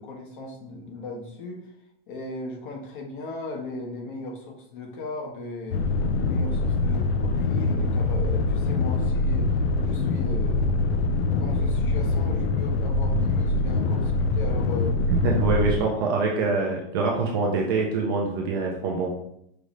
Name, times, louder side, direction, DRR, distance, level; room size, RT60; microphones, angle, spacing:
voice 1, 0.0-1.7 2.1-5.8 6.2-15.0 15.6-15.7 15.9-16.6, left 2 dB, 60° left, 0 dB, 1.2 m, -37 dB
sound 1, 5.7-15.8, left 2 dB, 80° left, 0.6 m, -24 dB
voice 2, 15.1-19.1, right 3 dB, 25° right, -1 dB, 0.4 m, -25 dB
5.0 x 2.7 x 3.1 m, 0.74 s
supercardioid pair, 175°, 30 cm